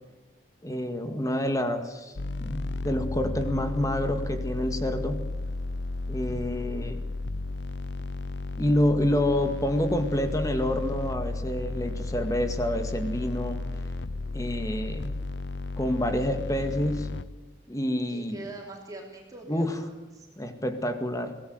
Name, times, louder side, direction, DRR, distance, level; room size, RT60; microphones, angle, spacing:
voice 1, 0.6-5.3 6.1-7.0 8.6-13.6 14.3-15.1 15.8-17.1 17.7-18.5 19.5-19.8 20.4-21.4, left 1 dB, 20° left, 7 dB, 1.9 m, -28 dB
sound 1, 2.2-17.2, left 2 dB, 75° left, 0.7 m, -33 dB
voice 2, 6.7-7.1 18.1-20.3, right 2 dB, 20° right, 0 dB, 3.2 m, -44 dB
24.5 x 17.5 x 7.9 m, 1.1 s
head